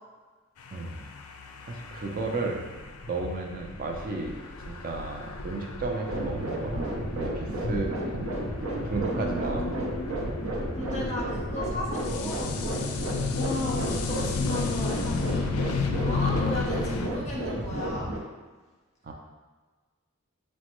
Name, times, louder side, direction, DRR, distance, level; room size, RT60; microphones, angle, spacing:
sound 1, 0.6-17.1, left 4 dB, 85° left, 0.4 m, -33 dB
voice 1, 0.7-1.0 1.6-2.7 3.1-4.3 4.6-8.3 8.8-9.9 13.9-14.0 16.3-17.0 19.0-19.1, right 3 dB, 40° right, 1 dB, 0.5 m, -34 dB
sound 2, 6.1-18.2, right 1 dB, 80° right, 0.7 m, -33 dB
voice 2, 9.1-10.1 10.7-12.9 13.3-15.4 15.9-18.1, left 1 dB, 30° left, -4 dB, 0.6 m, -35 dB
6.0 x 2.1 x 3.0 m, 1.3 s
head